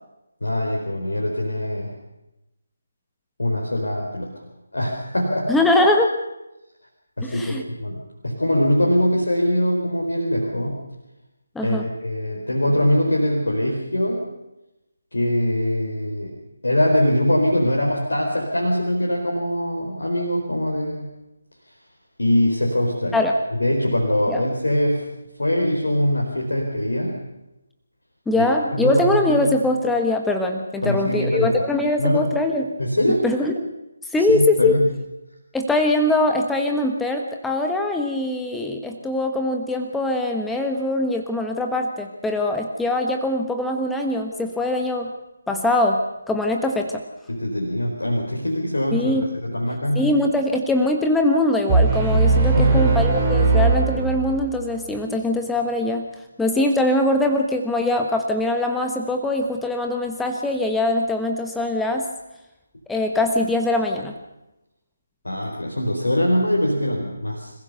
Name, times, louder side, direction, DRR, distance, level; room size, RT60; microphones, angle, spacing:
voice 1, 0.4-1.9 3.4-4.3 4.7-5.6 7.2-7.5 7.8-10.8 11.6-14.2 15.1-16.3 16.6-21.1 22.2-23.2 23.6-25.0 25.4-27.2 28.3-28.5 28.7-29.5 30.8-31.5 32.0-32.3 32.8-33.2 34.3-34.9 47.3-50.3 52.5-52.9 65.2-67.5, left 1 dB, 65° left, -1 dB, 4.1 m, -22 dB
voice 2, 5.5-6.1 7.2-7.6 11.5-11.9 23.1-23.3 24.3-24.4 28.3-32.7 33.2-33.7 34.1-34.8 35.5-45.1 45.5-47.0 48.9-49.3 49.9-56.1 56.4-62.1 62.9-64.1, left 2 dB, 5° left, 3 dB, 1.2 m, -22 dB
sound 1, 51.7-54.6, right 3 dB, 20° right, 3.7 m, -19 dB
26.5 x 15.5 x 6.8 m, 0.96 s
figure-of-eight pair, 150°, 0 cm